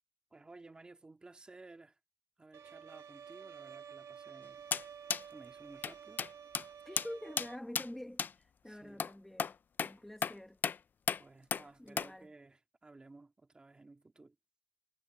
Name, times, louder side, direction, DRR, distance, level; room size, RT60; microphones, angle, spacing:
voice 1, 0.3-2.0 2.4-4.7 5.3-6.2 8.6-9.0 11.2-14.4, right 3 dB, 20° right, 2.0 m, -56 dB
Bowed string instrument, 2.5-7.6, right 7 dB, 75° right, 2.1 m, -51 dB
sound 1, 4.7-4.8 5.1-5.2 5.8-5.9 6.2-6.3 6.5-6.6 7.0-7.1 7.4-7.5 7.7-7.9 8.2-8.3 9.0-9.1 9.4-9.5 9.8-9.9 10.2-10.3 10.6-10.8 11.1-11.2 11.5-11.6 12.0-12.1, left 6 dB, 40° left, 0.4 m, -34 dB
voice 2, 6.8-9.5 9.8-10.6 11.8-12.3, left 1 dB, 5° left, 1.1 m, -47 dB
wide cardioid pair, 165°, 5 cm